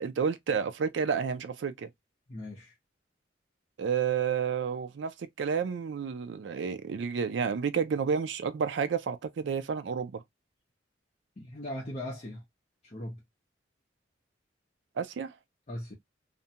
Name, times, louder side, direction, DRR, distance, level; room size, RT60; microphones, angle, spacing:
voice 1, 0.0-1.9 3.8-10.2 15.0-15.3, right 6 dB, 75° right, 0.4 m, -30 dB
voice 2, 2.3-2.7 11.4-12.4 12.8-13.2 15.7-15.9, left 1 dB, 35° left, 0.6 m, -39 dB
2.5 x 2.1 x 2.6 m
head